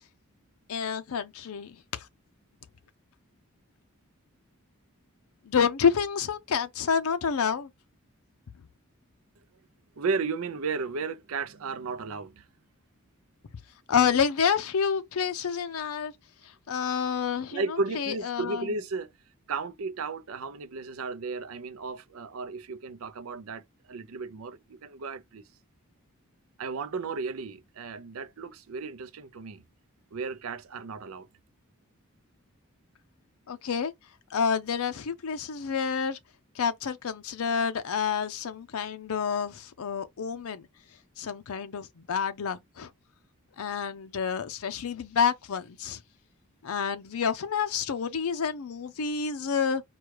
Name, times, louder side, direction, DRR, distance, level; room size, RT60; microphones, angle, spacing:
voice 1, 0.7-2.1 5.5-7.7 13.9-16.1 16.7-17.6 17.9-18.7 33.5-33.9 34.3-36.2 36.6-40.7 41.2-42.9 43.6-46.0 46.6-49.8, left 6 dB, 85° left, 0.5 m, -28 dB
voice 2, 10.0-12.5 17.5-19.1 19.5-25.4 26.6-29.6 30.1-31.3, right 4 dB, 75° right, 0.5 m, -34 dB
4.7 x 2.3 x 4.6 m
head